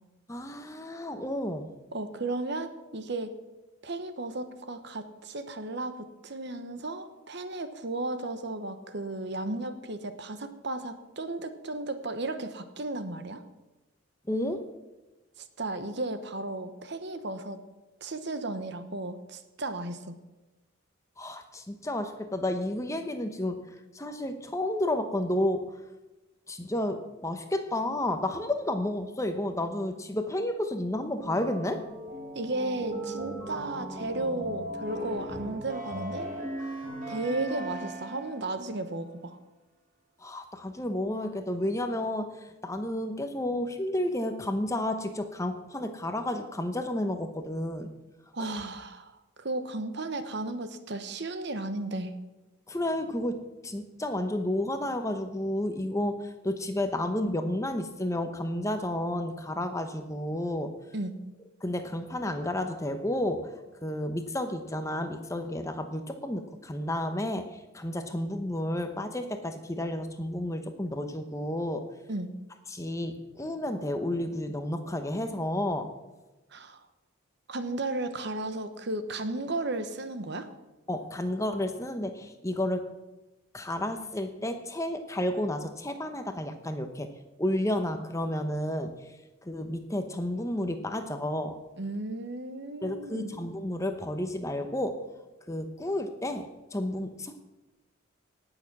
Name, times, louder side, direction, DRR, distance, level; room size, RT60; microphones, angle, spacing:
voice 1, 0.3-1.7 14.3-14.7 21.2-23.6 23.9-25.7 26.5-31.8 40.2-47.9 48.4-48.5 52.7-60.7 61.6-63.6 63.8-71.8 72.7-75.9 80.9-82.9 83.5-87.1 87.4-88.9 89.4-91.6 92.8-95.0 95.5-97.4, left 1 dB, 15° left, 7 dB, 0.9 m, -31 dB
voice 2, 1.9-3.4 3.8-13.4 15.4-17.6 18.0-20.2 32.3-36.3 37.1-39.4 48.3-52.1 60.9-61.1 72.1-72.3 76.5-76.8 77.5-80.5 91.8-93.4, right 2 dB, 55° right, 10 dB, 1.0 m, -34 dB
sound 1, 31.2-38.5, right 1 dB, 40° right, 5.0 m, -38 dB
18.0 x 7.0 x 6.1 m, 1.1 s
head